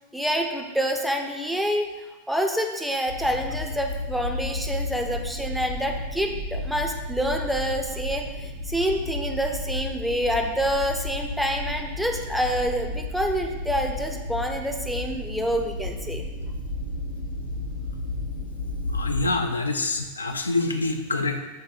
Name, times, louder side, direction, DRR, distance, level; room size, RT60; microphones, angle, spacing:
voice 1, 0.1-1.9 2.3-16.3, equal, ahead, 3 dB, 0.4 m, -27 dB
sound 1, 3.1-19.2, left 1 dB, 85° right, 1.4 m, -32 dB
voice 2, 18.9-21.4, left 3 dB, 75° left, 5 dB, 0.3 m, -26 dB
5.5 x 3.8 x 2.2 m, 1.1 s
figure-of-eight pair, 90°, 0 cm